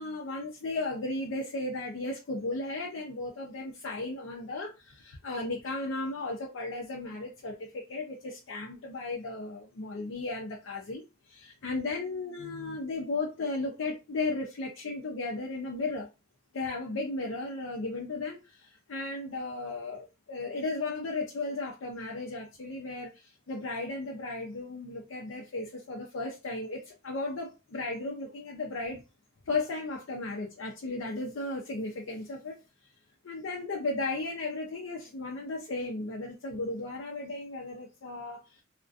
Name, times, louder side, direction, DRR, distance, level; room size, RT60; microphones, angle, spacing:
voice 1, 0.0-16.1 16.5-29.0 29.5-32.6 33.2-38.6, left 2 dB, 90° left, 0.5 m, -35 dB
2.4 x 2.1 x 2.4 m
head